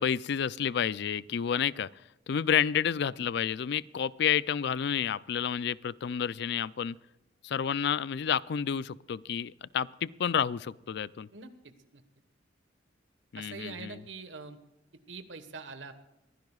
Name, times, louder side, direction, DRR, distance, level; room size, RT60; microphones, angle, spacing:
voice 1, 0.0-1.9 2.3-7.0 7.4-11.3 13.3-14.0, left 8 dB, 65° left, 19 dB, 0.4 m, -30 dB
voice 2, 11.3-12.0 13.4-14.6 15.1-15.9, right 4 dB, 80° right, 9 dB, 1.4 m, -44 dB
22.5 x 15.5 x 2.4 m, 0.92 s
head